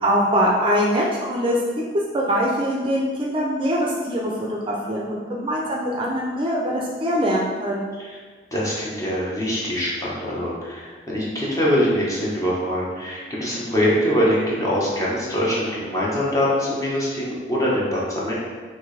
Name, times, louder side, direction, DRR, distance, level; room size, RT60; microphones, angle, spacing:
voice 1, 0.0-1.6 2.1-7.9, equal, 30° right, -2 dB, 0.5 m, -23 dB
voice 2, 8.5-18.3, equal, 20° left, -6 dB, 1.1 m, -23 dB
6.0 x 2.7 x 3.3 m, 1.5 s
head